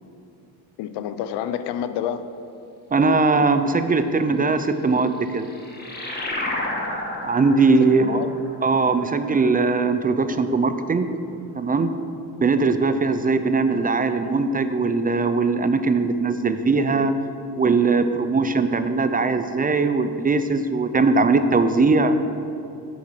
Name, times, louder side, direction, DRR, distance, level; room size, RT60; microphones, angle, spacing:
voice 1, 0.8-2.2 8.0-8.3, left 9 dB, 90° left, 11 dB, 0.6 m, -28 dB
voice 2, 2.9-5.5 7.2-8.2 8.6-11.2 11.5-11.9 12.4-17.1 17.6-22.2, right 3 dB, 25° right, 10 dB, 0.4 m, -20 dB
sound 1, 5.0-10.0, left 1 dB, 25° left, 1.6 m, -32 dB
7.8 x 7.1 x 5.9 m, 2.7 s
cardioid pair, 110°, 39 cm